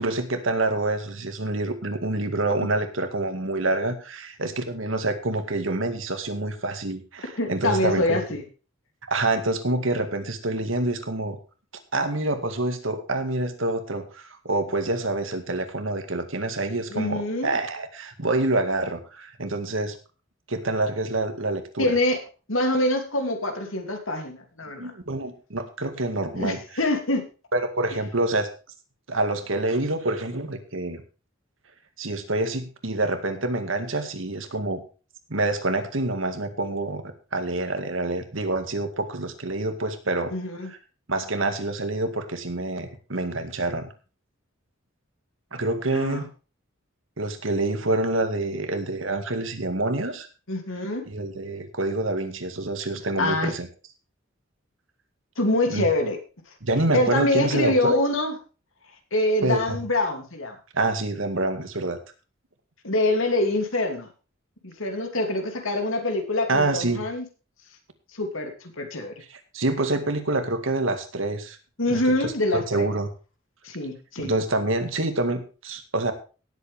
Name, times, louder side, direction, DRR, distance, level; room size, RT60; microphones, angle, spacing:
voice 1, 0.0-8.2 9.1-11.4 11.9-20.0 20.5-21.9 24.8-26.6 27.5-28.5 29.1-31.0 32.0-34.8 35.3-37.0 37.3-40.3 40.7-40.8 41.1-43.9 45.5-46.3 47.2-50.3 51.1-53.7 55.7-55.9 56.6-58.0 59.4-59.8 60.7-62.0 66.5-67.0 69.3-71.6 71.9-73.1 74.2-76.1, right 2 dB, 80° right, 8 dB, 2.0 m, -27 dB
voice 2, 7.4-8.4 16.9-17.6 21.8-22.2 22.5-24.9 26.3-27.2 40.3-40.7 45.9-46.3 50.5-51.0 53.2-53.5 55.4-56.2 56.9-58.3 59.1-60.5 62.8-64.1 64.6-67.2 68.1-69.1 71.8-72.9 73.6-74.3, left 2 dB, 90° left, 5 dB, 2.9 m, -25 dB
18.0 x 8.0 x 3.5 m, 0.34 s
head